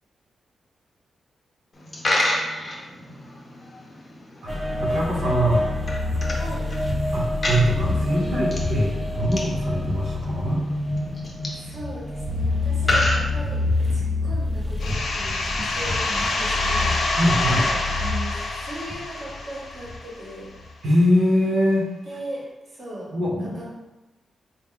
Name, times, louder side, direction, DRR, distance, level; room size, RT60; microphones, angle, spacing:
Coin (dropping), 1.7-14.0, left 1 dB, 25° left, 0.7 m, -31 dB
sound 1, 4.5-19.9 20.4-20.6, left 2 dB, 15° right, 0.6 m, -27 dB
voice 1, 4.8-5.6 7.1-10.6 17.2-17.6 20.8-21.9 23.1-23.6, equal, 80° right, -6 dB, 0.9 m, -22 dB
voice 2, 6.3-6.7 11.4-17.2 17.4-20.5 22.1-23.1 23.4-23.7, right 1 dB, 45° right, -4 dB, 1.0 m, -38 dB
sound 2, 14.8-20.3, left 2 dB, 65° left, 0.6 m, -27 dB
4.3 x 2.2 x 3.6 m, 1.1 s
wide cardioid pair, 145°, 0 cm